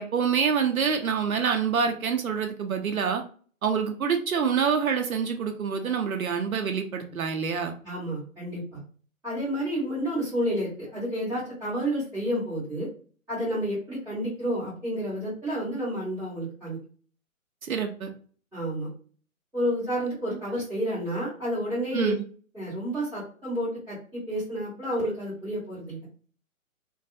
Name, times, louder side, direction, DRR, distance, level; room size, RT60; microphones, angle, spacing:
voice 1, 0.0-3.2 3.6-7.7 17.6-18.1 21.9-22.2, right 6 dB, 75° right, 4 dB, 0.6 m, -26 dB
voice 2, 7.8-8.8 9.2-12.9 13.3-16.8 18.5-18.9 19.5-22.1 22.5-26.1, equal, ahead, -16 dB, 0.5 m, -30 dB
2.2 x 2.2 x 2.6 m, 0.42 s
figure-of-eight pair, 130°, 42 cm